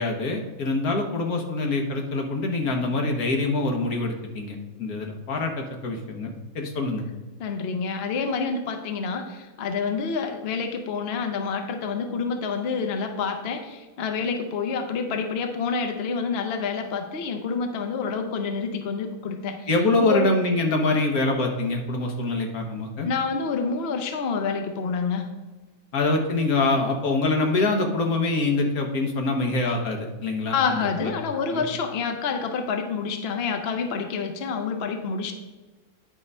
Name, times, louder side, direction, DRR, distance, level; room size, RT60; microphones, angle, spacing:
voice 1, 0.0-7.1 19.7-23.1 25.9-31.1 31.5-31.6, left 2 dB, 75° left, 2 dB, 1.6 m, -25 dB
voice 2, 7.4-19.7 20.0-20.3 23.0-25.3 30.5-35.3, left 5 dB, 50° left, 5 dB, 0.9 m, -28 dB
9.7 x 3.7 x 5.4 m, 1.2 s
omnidirectional pair, 1.6 m